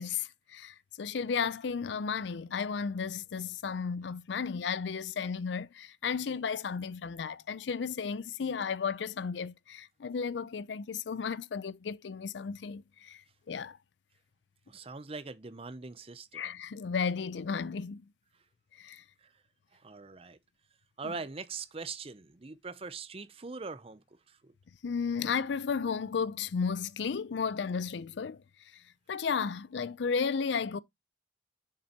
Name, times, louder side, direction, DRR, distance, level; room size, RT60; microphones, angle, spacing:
voice 1, 0.0-13.8 16.3-18.0 18.7-19.0 21.0-21.1 24.8-28.4 28.7-28.8 29.1-30.8, left 6 dB, 70° left, 0.4 m, -34 dB
voice 2, 14.7-16.4 19.2-19.3 19.7-20.4 21.0-24.5, right 4 dB, 30° right, 0.6 m, -42 dB
6.8 x 6.6 x 2.9 m
head